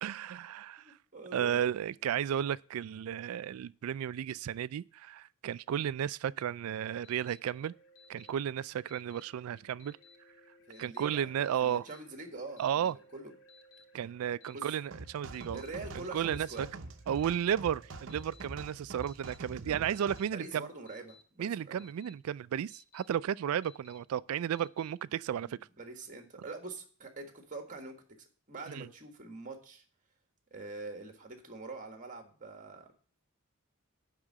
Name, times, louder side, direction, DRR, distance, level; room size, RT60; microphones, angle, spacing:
voice 1, 0.0-1.0 1.3-7.7 8.1-10.0 10.8-11.9 12.6-13.0 13.9-15.6 16.1-16.7 17.1-20.6 21.4-25.6 28.7-28.9, right 9 dB, 85° right, 0.3 m, -33 dB
voice 2, 1.1-1.6 10.7-11.3 11.6-13.3 14.5-14.7 15.5-16.7 19.5-21.9 25.4-28.0 28.5-29.8 30.5-32.9, right 3 dB, 40° right, 1.6 m, -45 dB
Alarm, 7.0-7.4 8.0-8.3 8.9-9.2 9.8-10.2 10.7-11.1 11.6-12.0 12.6-12.9 13.5-13.8 14.4-14.8 15.3-15.7 16.2-16.6 17.2-17.5 18.1-18.5 19.0-19.4 19.9-20.3 20.9-21.2 21.8-22.1 22.7-23.1 23.6-24.0 24.5-24.9, left 5 dB, 80° left, 1.3 m, -59 dB
sound 1, 7.4-18.8, equal, 60° left, 1.2 m, -64 dB
sound 2, 14.9-20.2, right 2 dB, 60° right, 0.8 m, -45 dB
9.9 x 3.8 x 7.3 m
head